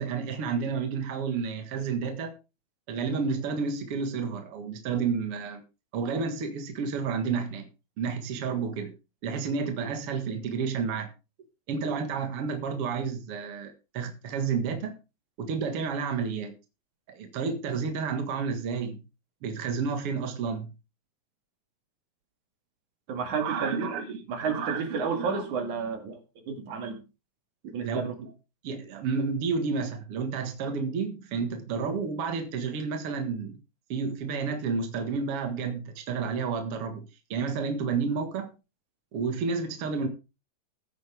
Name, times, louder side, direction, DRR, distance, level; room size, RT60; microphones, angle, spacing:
voice 1, 0.0-2.3 2.9-5.6 5.9-7.7 8.0-8.9 9.2-11.1 11.7-14.9 15.4-16.5 17.1-19.0 19.4-20.7 23.4-24.2 24.5-25.4 27.8-28.3 28.6-33.6 33.9-38.5 39.1-40.1, right 5 dB, 55° right, 2.4 m, -31 dB
voice 2, 23.1-23.9 24.3-26.2 26.5-27.0 27.6-28.2, right 5 dB, 85° right, 3.8 m, -31 dB
15.5 x 9.3 x 3.5 m
omnidirectional pair, 3.4 m